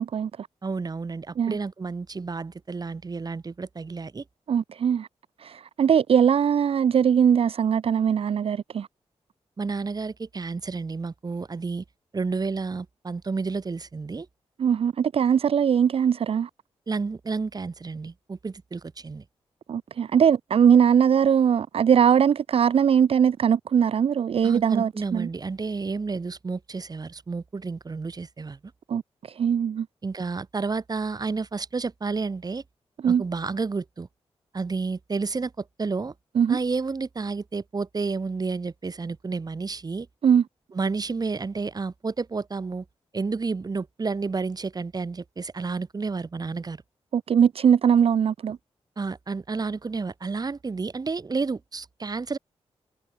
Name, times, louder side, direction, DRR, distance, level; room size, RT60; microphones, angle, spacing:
voice 1, 0.0-0.5 1.4-1.6 4.5-5.1 5.4-8.9 14.6-16.5 19.7-25.3 28.9-29.9 33.0-33.2 36.4-36.6 40.2-40.4 47.1-48.6, right 8 dB, 60° right, 0.5 m, -21 dB
voice 2, 0.6-4.2 9.6-11.8 12.1-14.3 16.9-19.2 24.4-28.6 30.0-32.6 33.1-34.1 34.5-36.1 36.5-40.1 40.7-42.8 43.1-46.8 49.0-52.4, right 4 dB, 35° right, 1.6 m, -31 dB
cardioid pair, 95°, 11 cm